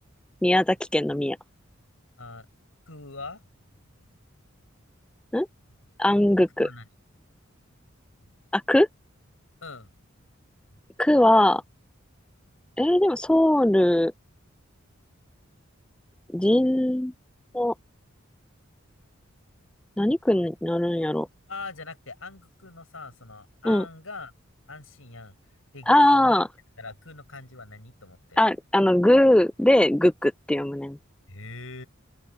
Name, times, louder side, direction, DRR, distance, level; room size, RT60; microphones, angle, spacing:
voice 1, 0.4-1.4 5.3-5.5 6.0-6.7 8.5-8.9 11.0-11.6 12.8-14.1 16.3-17.1 17.5-17.7 20.0-21.3 23.7-23.8 25.9-26.4 28.4-31.0, left 1 dB, 5° left, 0.3 m, -20 dB
voice 2, 2.9-3.4 6.6-6.9 9.6-9.9 21.5-24.3 24.7-26.4 26.8-28.4 31.3-31.9, left 3 dB, 85° left, 6.1 m, -42 dB
open air
head